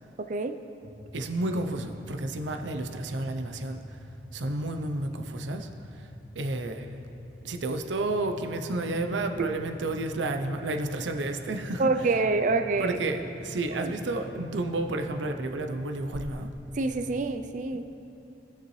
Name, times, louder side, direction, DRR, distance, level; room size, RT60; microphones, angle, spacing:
sound 1, 0.8-17.3, left 1 dB, 70° left, 1.2 m, -45 dB
voice 1, 1.1-4.0 4.3-7.0 7.4-11.9 12.8-16.5, right 2 dB, 90° right, 6 dB, 0.6 m, -31 dB
voice 2, 11.8-13.0 13.8-13.9 16.7-17.8, right 3 dB, 45° right, 8 dB, 0.4 m, -26 dB
18.0 x 6.8 x 3.2 m, 2.9 s
head